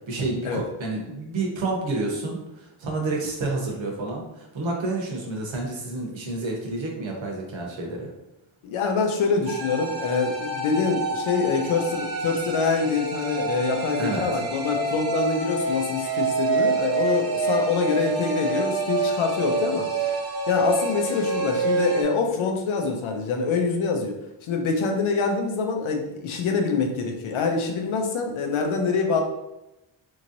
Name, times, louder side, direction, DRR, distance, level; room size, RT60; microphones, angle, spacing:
voice 1, 0.1-8.1 14.0-14.3, right 2 dB, 70° right, 0 dB, 0.9 m, -29 dB
voice 2, 8.6-19.9 20.5-24.1 24.4-29.2, left 4 dB, 80° left, 3 dB, 0.7 m, -25 dB
sound 1, 9.5-22.0, right 3 dB, 45° right, 0.6 m, -27 dB
3.0 x 2.8 x 2.6 m, 0.93 s
wide cardioid pair, 120°, 48 cm